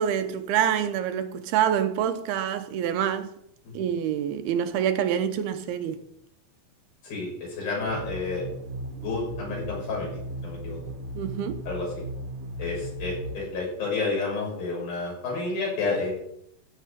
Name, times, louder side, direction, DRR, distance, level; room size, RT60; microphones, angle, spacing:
voice 1, 0.0-3.3 3.7-6.0 11.1-11.7, right 9 dB, 85° right, 2.9 m, -26 dB
voice 2, 7.0-8.5 8.9-10.8 11.7-11.9 12.6-16.1, left 3 dB, 70° left, 8.3 m, -30 dB
sound 1, 7.8-13.4, right 1 dB, 60° right, 2.0 m, -36 dB
15.0 x 5.5 x 8.4 m
omnidirectional pair, 4.4 m